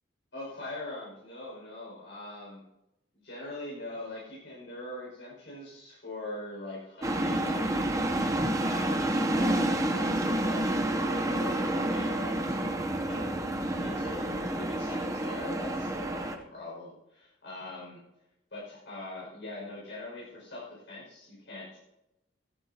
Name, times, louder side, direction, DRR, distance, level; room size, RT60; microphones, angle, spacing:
voice 1, 0.3-2.6 3.2-8.1 8.6-18.0 18.5-21.8, left 2 dB, 80° left, -6 dB, 5.7 m, -42 dB
sound 1, 7.0-16.4, right 1 dB, 20° right, 0.7 m, -29 dB
15.5 x 14.0 x 2.8 m, 0.92 s
head